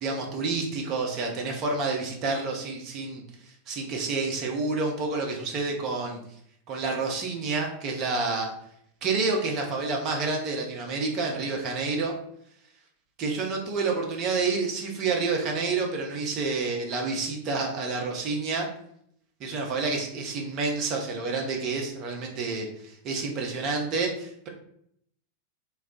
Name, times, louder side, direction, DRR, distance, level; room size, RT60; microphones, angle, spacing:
voice 1, 0.0-3.2 3.7-6.2 6.7-8.5 9.0-12.1 13.2-18.7 19.4-24.5, right 3 dB, 35° right, 1 dB, 0.7 m, -29 dB
2.3 x 2.3 x 3.6 m, 0.70 s
figure-of-eight pair, 90°, 0 cm